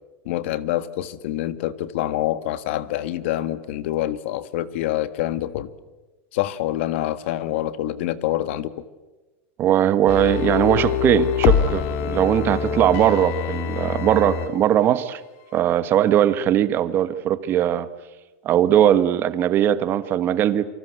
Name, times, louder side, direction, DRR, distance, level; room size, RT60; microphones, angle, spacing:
voice 1, 0.2-5.7 6.3-8.7, left 13 dB, 65° left, 14 dB, 1.6 m, -26 dB
voice 2, 9.6-15.2 15.5-17.9 18.4-20.6, right 11 dB, 30° right, 13 dB, 1.4 m, -19 dB
sound 1, 10.1-14.5 14.9-15.0, left 9 dB, 45° left, 2.4 m, -24 dB
28.0 x 25.0 x 8.2 m, 1.1 s
supercardioid pair, 155°, 7 cm